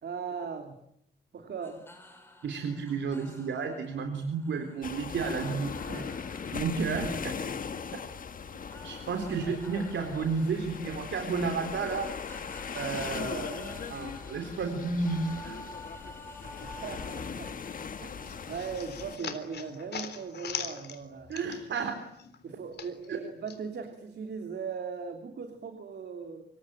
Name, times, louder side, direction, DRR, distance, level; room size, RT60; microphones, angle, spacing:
voice 1, 0.0-0.8 1.3-1.8 5.9-6.2 16.6-17.6 18.0-21.4 22.4-26.4, right 6 dB, 65° right, 6 dB, 3.1 m, -39 dB
sound 1, 1.6-21.1, left 1 dB, 10° left, 6.1 m, -52 dB
voice 2, 2.4-5.8 6.5-7.4 8.8-12.1 12.7-15.6 21.3-22.0 23.1-23.2, right 5 dB, 85° right, 6 dB, 3.7 m, -32 dB
sound 2, 4.8-19.2, left 6 dB, 45° left, 1.4 m, -39 dB
sound 3, 18.3-21.9 22.2-23.6, left 6 dB, 65° left, 3.7 m, -40 dB
26.5 x 25.0 x 9.0 m, 0.73 s
wide cardioid pair, 155°, 19 cm